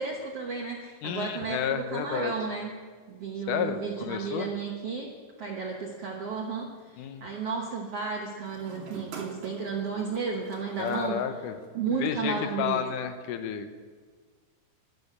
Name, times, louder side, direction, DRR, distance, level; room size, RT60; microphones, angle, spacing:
voice 1, 0.0-2.8 3.1-5.1 5.4-11.2 11.7-12.9, right 5 dB, 80° right, 0 dB, 1.3 m, -33 dB
voice 2, 1.0-2.3 3.5-4.5 7.0-7.2 10.8-11.6 12.0-13.7, left 8 dB, 70° left, 8 dB, 2.1 m, -31 dB
sound 1, 5.7-7.0 8.4-11.9, right 4 dB, 55° right, 2.7 m, -47 dB
12.5 x 12.0 x 8.4 m, 1.5 s
omnidirectional pair, 4.7 m